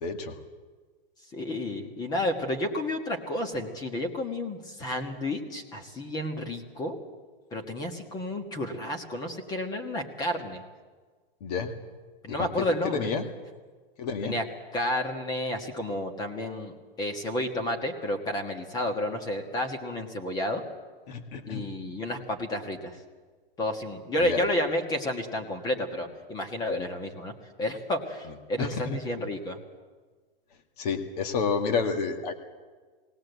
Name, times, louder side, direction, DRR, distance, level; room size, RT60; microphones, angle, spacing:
voice 1, 0.0-0.3 11.4-11.7 12.3-12.7 12.9-13.2 14.0-14.4 21.1-21.7 24.2-24.4 28.6-29.0 30.8-32.3, left 5 dB, 45° left, 7 dB, 2.0 m, -30 dB
voice 2, 1.3-7.0 7.5-10.6 12.2-13.1 14.2-14.4 14.7-20.6 21.5-23.0 23.6-27.3 27.6-29.6, left 1 dB, 15° left, 5 dB, 1.5 m, -31 dB
21.0 x 18.0 x 8.2 m, 1.4 s
supercardioid pair, 165°, 29 cm